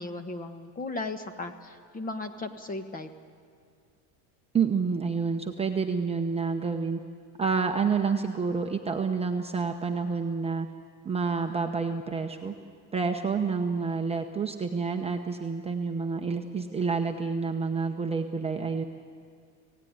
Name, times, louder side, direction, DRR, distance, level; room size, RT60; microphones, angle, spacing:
voice 1, 0.0-3.1, left 2 dB, 20° left, 8 dB, 1.3 m, -36 dB
voice 2, 4.5-7.0 7.4-10.7 11.0-12.5 12.9-18.8, right 5 dB, 15° right, 2 dB, 0.9 m, -28 dB
27.0 x 17.5 x 9.7 m, 2.2 s
cardioid pair, 155°, 44 cm